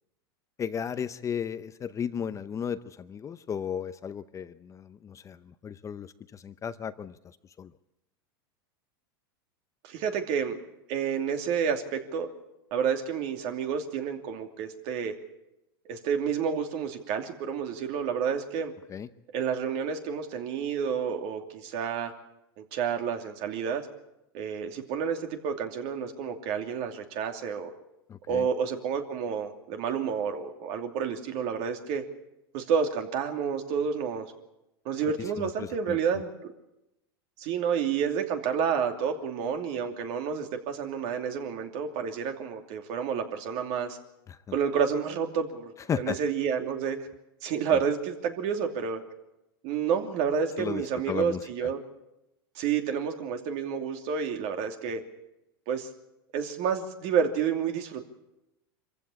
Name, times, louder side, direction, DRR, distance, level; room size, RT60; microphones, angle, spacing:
voice 1, 0.6-7.7 18.9-19.1 28.1-28.5 35.4-36.0 44.3-44.4 45.9-46.2 47.7-47.8 50.6-51.4, left 7 dB, 25° left, 12 dB, 0.7 m, -35 dB
voice 2, 9.8-10.6 10.9-12.3 12.7-15.1 15.8-18.7 19.3-22.1 22.6-23.9 24.3-27.7 28.3-32.0 32.5-34.3 34.8-36.5 37.4-44.0 44.5-47.0 47.4-49.0 49.6-51.8 52.5-55.0 55.7-55.9 56.3-58.1, right 7 dB, 55° right, 5 dB, 2.8 m, -30 dB
24.0 x 15.0 x 8.7 m, 0.93 s
hypercardioid pair, 110°, 13 cm